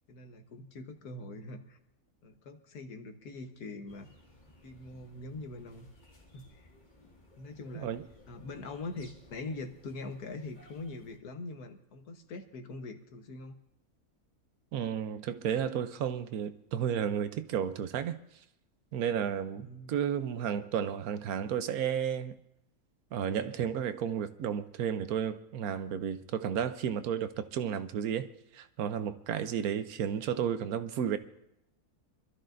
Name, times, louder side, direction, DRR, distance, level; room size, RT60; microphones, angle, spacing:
voice 1, 0.1-1.8 2.2-4.1 4.6-5.9 6.3-6.7 7.4-7.9 8.3-13.5 19.6-20.0, left 2 dB, 85° left, 1.6 m, -43 dB
sound 1, 3.9-11.2, left 1 dB, 30° left, 2.1 m, -59 dB
voice 2, 14.7-18.2 18.9-22.4 23.1-31.2, right 8 dB, 75° right, 1.2 m, -32 dB
25.5 x 13.0 x 2.6 m
omnidirectional pair, 1.6 m